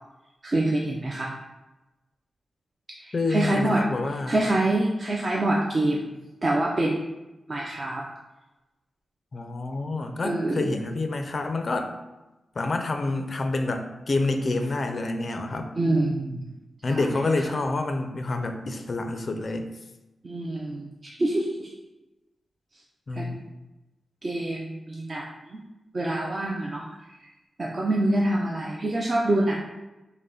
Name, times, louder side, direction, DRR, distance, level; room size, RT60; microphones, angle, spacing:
voice 1, 0.4-1.3 3.0-3.8 4.3-6.1 6.4-7.0 7.5-8.0 10.2-10.8 15.8-16.4 16.9-17.0 20.2-21.7 23.1-23.3 24.2-25.2 25.5-25.6 25.9-26.8 27.6-29.5, right 1 dB, 30° right, -3 dB, 0.4 m, -25 dB
voice 2, 3.1-4.4 9.3-11.9 12.6-15.7 16.8-19.7 23.1-23.5, left 2 dB, 35° left, 5 dB, 0.4 m, -28 dB
5.4 x 2.1 x 3.7 m, 1.1 s
wide cardioid pair, 160°, 0 cm